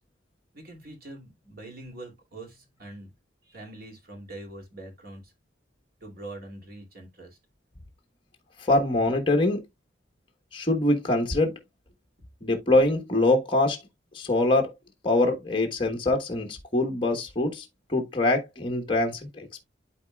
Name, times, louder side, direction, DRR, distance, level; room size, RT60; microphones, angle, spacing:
voice 1, 0.5-3.1 3.4-5.3 6.0-7.4, right 2 dB, 55° right, 2.7 m, -43 dB
voice 2, 8.6-9.6 10.5-11.6 12.4-13.8 14.1-14.7 15.0-19.6, left 2 dB, 30° left, 1.2 m, -24 dB
12.0 x 4.2 x 2.3 m
head